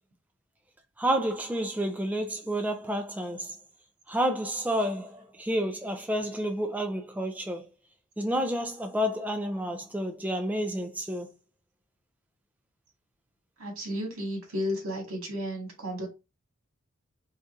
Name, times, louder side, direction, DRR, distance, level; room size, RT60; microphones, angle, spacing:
voice 1, 1.0-3.6 4.1-7.7 8.2-11.3, equal, 5° right, 0.4 m, -30 dB
voice 2, 13.6-16.1, equal, 80° right, 1.9 m, -33 dB
4.0 x 3.6 x 2.5 m
head